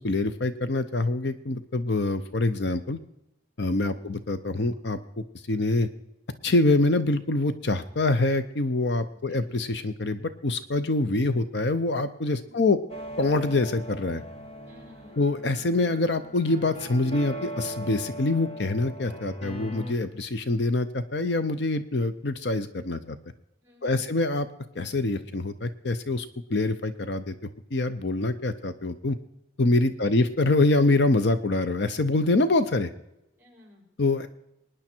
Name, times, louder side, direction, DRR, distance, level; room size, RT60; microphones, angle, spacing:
voice 1, 0.0-3.0 3.6-5.9 6.4-12.8 13.2-14.2 15.2-23.2 23.8-24.5 24.7-29.2 29.6-32.9 34.0-34.3, left 2 dB, 60° left, 12 dB, 0.7 m, -25 dB
sound 1, 12.9-19.9, right 1 dB, 30° left, 2.0 m, -39 dB
voice 2, 14.6-15.3 23.6-24.1 29.9-30.4 33.4-33.9, left 1 dB, 10° right, -1 dB, 6.1 m, -55 dB
23.5 x 10.0 x 4.4 m, 0.88 s
head